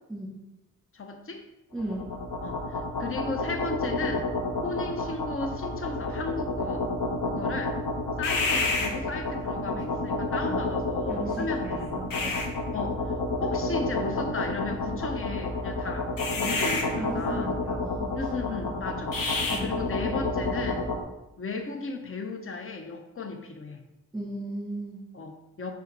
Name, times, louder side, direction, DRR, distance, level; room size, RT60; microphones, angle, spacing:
voice 1, 0.9-1.5 2.4-4.3 4.6-6.9 7.3-7.8 8.2-12.0 12.7-16.1 16.4-17.5 18.1-20.8 21.4-23.8 25.1-25.7, left 3 dB, 40° left, 5 dB, 0.8 m, -35 dB
voice 2, 1.7-2.1 9.6-9.7 10.0-10.1 10.5-10.7 11.1-12.5 16.9-18.2 19.5-19.7 24.1-25.0, right 1 dB, ahead, -9 dB, 2.3 m, -36 dB
sound 1, 1.8-21.0, left 2 dB, 80° left, 1.2 m, -29 dB
5.5 x 5.1 x 5.3 m, 0.94 s
wide cardioid pair, 140°, 33 cm